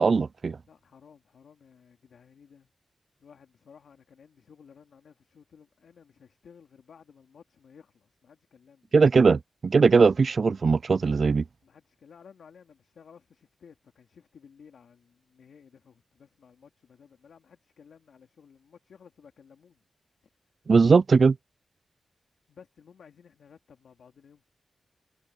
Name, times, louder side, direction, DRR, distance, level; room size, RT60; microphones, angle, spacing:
voice 1, 0.0-0.6 8.9-11.4 20.7-21.4, right 4 dB, 65° right, 0.3 m, -20 dB
voice 2, 0.7-2.7 3.2-8.9 11.6-19.8 22.5-24.4, left 6 dB, 85° left, 2.8 m, -55 dB
cardioid pair, 50°, 0 cm